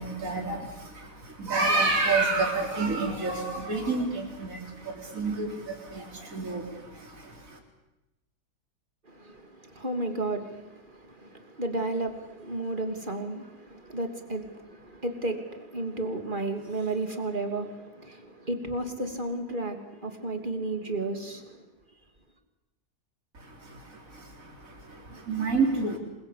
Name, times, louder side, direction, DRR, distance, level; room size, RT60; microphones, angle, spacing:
voice 1, 0.0-7.6 23.3-26.0, right 3 dB, 55° right, 1 dB, 4.3 m, -29 dB
voice 2, 9.1-21.7, right 2 dB, 30° right, 5 dB, 3.0 m, -33 dB
27.5 x 22.5 x 8.5 m, 0.96 s
omnidirectional pair, 1.7 m